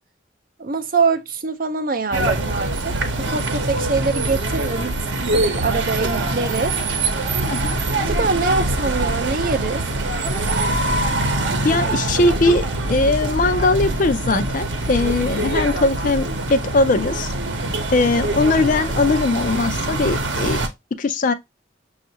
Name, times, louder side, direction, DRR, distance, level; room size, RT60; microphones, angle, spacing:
voice 1, 0.6-6.8 8.0-9.8, right 4 dB, 50° right, 0.6 m, -24 dB
sound 1, 2.1-20.7, right 2 dB, 75° right, 0.8 m, -23 dB
voice 2, 7.5-7.8 11.6-17.3 17.9-20.6 20.9-21.3, left 3 dB, 45° left, 0.4 m, -20 dB
6.3 x 2.4 x 2.8 m
head